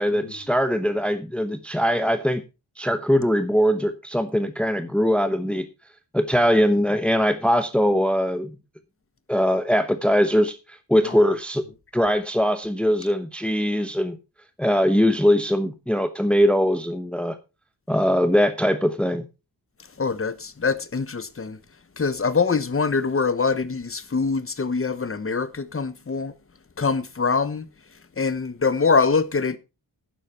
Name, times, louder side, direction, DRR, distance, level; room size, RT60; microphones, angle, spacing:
voice 1, 0.0-2.4 2.8-5.7 6.1-8.5 9.3-11.6 11.9-14.2 14.6-17.4 17.9-19.3, equal, 5° left, 1.0 m, -21 dB
voice 2, 20.0-21.6 22.0-26.3 26.8-27.7 28.2-29.6, left 4 dB, 30° left, 1.1 m, -24 dB
11.5 x 10.0 x 4.4 m
wide cardioid pair, 115°, 43 cm